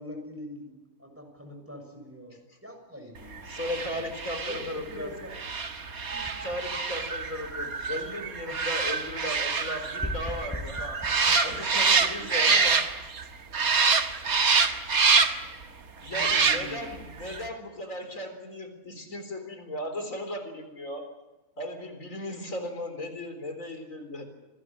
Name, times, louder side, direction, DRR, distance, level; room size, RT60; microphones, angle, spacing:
voice 1, 0.0-4.1 4.5-5.4 11.3-12.3 16.1-16.9, equal, 10° right, 3 dB, 6.7 m, -44 dB
voice 2, 3.5-5.1 6.1-11.1 11.4-12.9 14.7-14.8 15.4-15.6 16.0-21.1 21.6-24.2, left 1 dB, 65° left, 6 dB, 4.4 m, -36 dB
sound 1, 3.5-13.2 13.5-15.5 16.1-16.9 17.3-17.4, right 5 dB, 90° right, 2.2 m, -26 dB
sound 2, 6.1-7.5 10.0-12.5, equal, 10° left, 1.5 m, -39 dB
27.0 x 19.5 x 8.6 m, 1.1 s
omnidirectional pair, 1.5 m